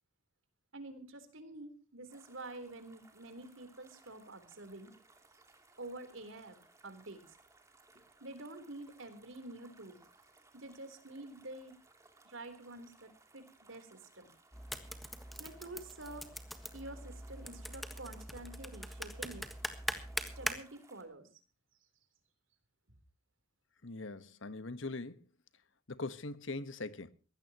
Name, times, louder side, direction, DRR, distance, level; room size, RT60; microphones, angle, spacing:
voice 1, 0.7-4.9 5.8-7.2 8.2-10.0 10.5-11.8 12.2-14.3 15.4-16.3 16.7-19.5 20.4-21.3, right 2 dB, 85° right, 3.8 m, -48 dB
sound 1, 2.1-21.0, right 3 dB, 15° right, 2.9 m, -64 dB
sound 2, 14.5-20.6, equal, ahead, 1.5 m, -42 dB
voice 2, 23.8-25.2 25.9-27.1, left 3 dB, 80° left, 1.3 m, -41 dB
21.5 x 16.5 x 3.0 m
head